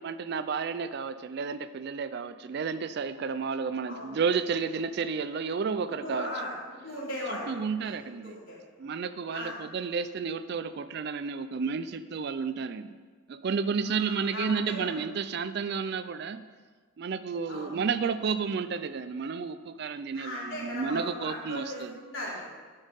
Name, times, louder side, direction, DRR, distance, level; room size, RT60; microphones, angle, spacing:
voice 1, 0.0-6.3 7.5-8.4 8.8-13.0 13.3-16.4 17.0-21.9, right 5 dB, 50° right, 13 dB, 0.3 m, -31 dB
voice 2, 6.0-6.5 6.8-7.5 7.8-7.9 8.2-8.6 9.3-9.5 13.8-14.9 17.5-17.7 20.1-22.6, left 1 dB, 65° left, -6 dB, 3.3 m, -38 dB
11.0 x 5.4 x 5.3 m, 1.5 s
head